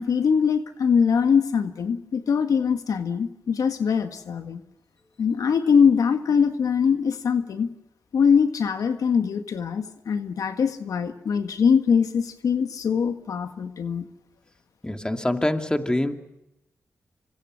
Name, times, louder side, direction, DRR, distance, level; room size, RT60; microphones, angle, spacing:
voice 1, 0.0-4.6 5.2-7.7 8.1-14.0, left 6 dB, 80° left, 8 dB, 1.6 m, -22 dB
voice 2, 14.8-16.2, left 1 dB, 15° left, 6 dB, 2.6 m, -25 dB
27.0 x 25.0 x 6.5 m, 0.90 s
cardioid pair, 55°, 6 cm